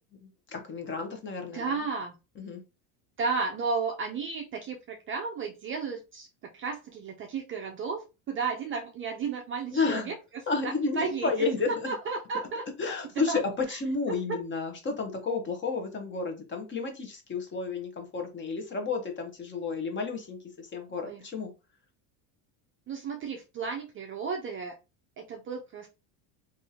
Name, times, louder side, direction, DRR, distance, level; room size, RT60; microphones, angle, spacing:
voice 1, 0.2-1.8 2.4-2.6 9.7-10.1 10.5-11.9 12.8-21.5, left 4 dB, 25° left, 4 dB, 0.8 m, -31 dB
voice 2, 1.5-2.1 3.2-12.6 13.2-13.4 13.7-13.8 14.1-14.2 21.0-21.3 22.9-24.7 25.2-25.9, right 5 dB, 30° right, 2 dB, 0.4 m, -33 dB
3.5 x 2.6 x 2.7 m, 0.28 s
cardioid pair, 140°, 46 cm